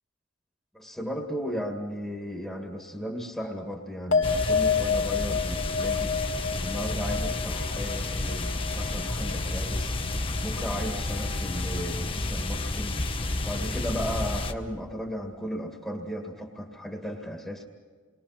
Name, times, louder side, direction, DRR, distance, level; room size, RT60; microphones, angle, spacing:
voice 1, 0.7-6.1 6.6-10.0 10.4-13.0 13.4-17.7, equal, ahead, 1 dB, 2.0 m, -35 dB
sound 1, 4.1-10.8 11.1-11.7, left 5 dB, 80° left, 2.2 m, -30 dB
sound 2, 4.2-14.5, left 2 dB, 30° left, 1.0 m, -31 dB
29.5 x 22.0 x 5.9 m, 1.5 s
head